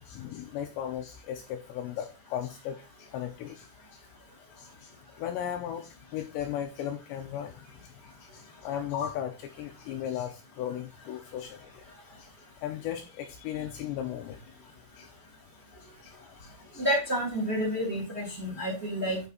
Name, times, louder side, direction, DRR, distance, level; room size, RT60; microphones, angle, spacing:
voice 1, 0.0-4.0 4.6-4.9 5.2-11.8 12.2-12.3 12.6-14.5 15.0-15.1 16.0-16.9, left 10 dB, 80° left, 4 dB, 2.7 m, -37 dB
voice 2, 16.8-19.2, equal, 20° right, -1 dB, 2.2 m, -29 dB
9.6 x 5.2 x 4.1 m, 0.29 s
omnidirectional pair, 5.7 m